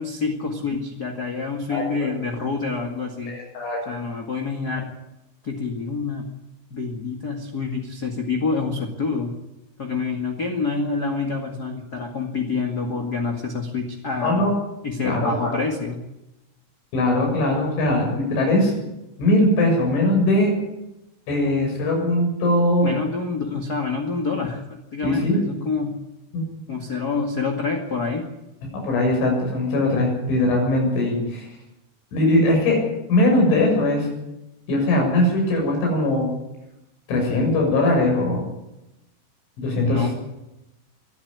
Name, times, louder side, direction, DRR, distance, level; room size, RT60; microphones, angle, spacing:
voice 1, 0.0-3.3 3.8-4.9 5.4-6.3 6.7-9.3 9.8-14.5 14.8-16.0 22.8-25.9 26.7-28.3 39.8-40.1, left 4 dB, 40° left, 2 dB, 1.5 m, -27 dB
voice 2, 3.3-3.8 14.2-14.5 15.0-15.3 16.9-18.7 19.2-20.5 21.3-22.9 25.0-25.4 26.3-26.4 28.7-31.5 32.1-32.8 33.1-34.1 34.7-36.3 37.1-38.5 39.6-40.1, left 1 dB, 90° left, 1 dB, 9.3 m, -20 dB
22.5 x 13.0 x 9.8 m, 0.93 s
omnidirectional pair, 5.3 m